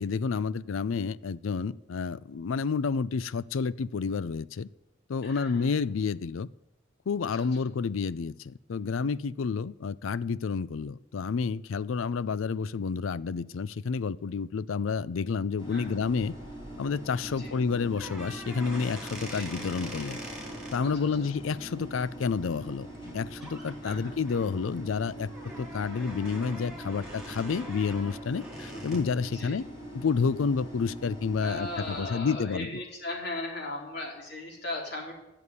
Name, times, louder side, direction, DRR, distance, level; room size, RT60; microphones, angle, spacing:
voice 1, 0.0-4.7 5.1-6.5 7.1-16.4 16.8-20.2 20.7-22.9 23.1-25.3 25.6-29.6 29.9-32.8, left 5 dB, 80° left, 19 dB, 0.4 m, -30 dB
voice 2, 5.2-5.7 7.3-7.5 15.7-16.0 17.3-17.5 19.3-19.5 20.8-21.1 23.8-24.2 28.7-28.8 29.2-29.6 31.4-35.1, left 2 dB, 55° left, -1 dB, 3.8 m, -38 dB
sound 1, 15.6-32.0, equal, 25° left, 4.8 m, -43 dB
sound 2, 17.9-20.8 22.9-23.1 23.4-23.7 24.2-29.1, right 1 dB, 5° right, 2.8 m, -43 dB
11.0 x 6.9 x 9.6 m, 0.92 s
head